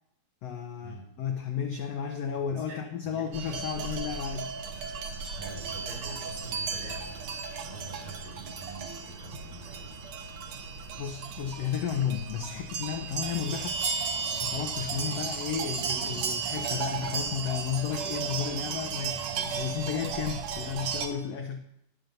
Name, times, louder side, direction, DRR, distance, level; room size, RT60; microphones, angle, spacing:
voice 1, 0.4-4.5 11.0-13.8 14.4-21.6, left 8 dB, 85° left, 5 dB, 1.4 m, -33 dB
voice 2, 2.5-3.3 5.3-9.9 15.0-15.4 19.1-19.4, right 3 dB, 85° right, -4 dB, 5.3 m, -46 dB
sound 1, 3.3-21.1, right 5 dB, 65° right, 1.8 m, -34 dB
20.0 x 7.1 x 2.7 m, 0.78 s
omnidirectional pair, 3.8 m